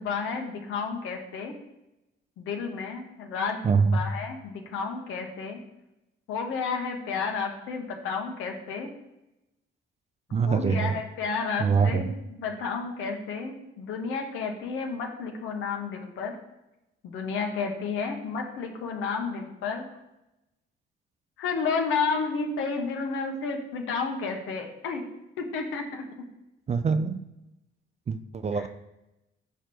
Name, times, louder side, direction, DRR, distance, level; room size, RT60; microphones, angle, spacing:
voice 1, 0.0-1.5 2.4-3.6 3.9-5.6 6.3-8.9 10.5-16.4 17.0-19.8 21.4-25.0 25.4-26.0 28.5-28.7, left 5 dB, 90° left, 2 dB, 1.1 m, -31 dB
voice 2, 3.6-4.0 10.3-11.0 11.6-12.1 26.7-27.2 28.1-28.7, right 5 dB, 35° right, 10 dB, 0.4 m, -24 dB
7.0 x 4.3 x 4.7 m, 0.93 s
cardioid pair, 90°, 20 cm